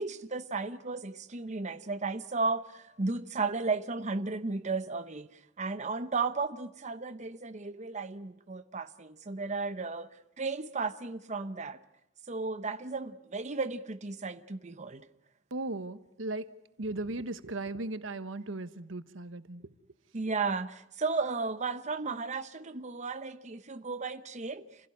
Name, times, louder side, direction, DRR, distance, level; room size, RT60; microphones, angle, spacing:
voice 1, 0.0-10.1 10.4-11.8 12.3-15.1 20.1-24.7, right 4 dB, 40° right, 0.9 m, -34 dB
voice 2, 15.5-16.5 16.8-19.7, right 2 dB, 85° right, 1.2 m, -37 dB
29.0 x 16.5 x 9.6 m
head